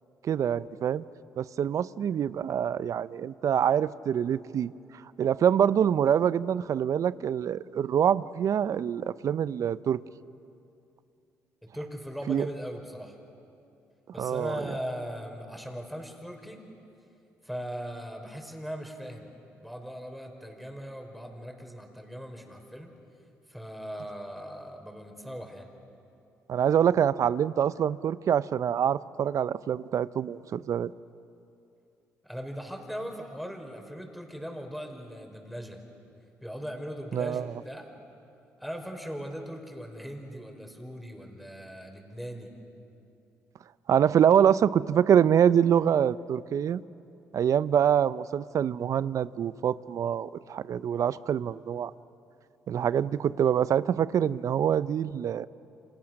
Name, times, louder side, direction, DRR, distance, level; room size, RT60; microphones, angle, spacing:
voice 1, 0.2-1.0 1.4-4.7 5.2-10.0 12.3-12.5 14.2-14.5 26.5-30.9 37.1-37.5 43.9-46.8 47.3-51.9 52.7-55.5, right 9 dB, 55° right, 17 dB, 0.6 m, -25 dB
voice 2, 11.7-13.2 14.1-16.7 17.4-19.3 19.6-22.9 23.5-25.7 32.2-35.8 36.4-38.0 38.6-42.6, equal, ahead, 3 dB, 5.1 m, -39 dB
29.5 x 27.0 x 6.5 m, 2.7 s
hypercardioid pair, 55°, 6 cm